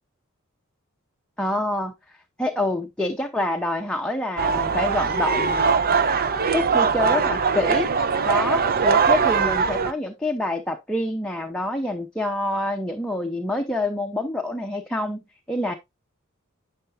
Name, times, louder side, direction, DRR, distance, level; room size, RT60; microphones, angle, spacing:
voice 1, 1.4-2.0 2.4-5.7 6.5-7.9 8.3-15.7, left 1 dB, 5° left, 0.8 m, -27 dB
sound 1, 4.4-9.9, right 5 dB, 45° right, 0.7 m, -21 dB
10.5 x 5.7 x 2.5 m
head